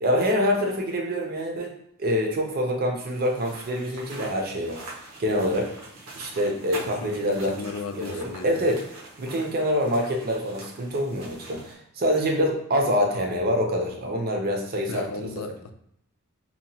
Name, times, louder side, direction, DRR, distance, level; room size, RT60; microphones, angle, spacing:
voice 1, 0.0-1.7 2.0-4.8 5.2-5.7 6.2-7.6 8.0-8.8 9.2-15.3, equal, 45° right, 1 dB, 0.5 m, -25 dB
sound 1, 3.0-11.7, right 2 dB, 90° right, 0.8 m, -43 dB
voice 2, 6.8-8.6 14.9-15.7, left 4 dB, 80° left, 7 dB, 0.3 m, -36 dB
2.8 x 2.2 x 2.7 m, 0.72 s
head